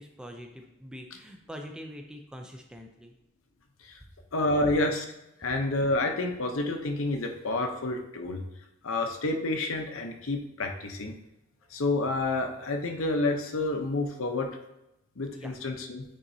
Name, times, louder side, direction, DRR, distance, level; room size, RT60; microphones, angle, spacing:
voice 1, 0.0-3.1 15.3-15.6, equal, 5° right, 3 dB, 0.5 m, -44 dB
voice 2, 4.3-5.0 5.4-8.4 8.8-11.1 11.7-14.5 15.2-16.0, left 2 dB, 80° left, 5 dB, 0.8 m, -29 dB
8.9 x 3.9 x 2.7 m, 0.89 s
head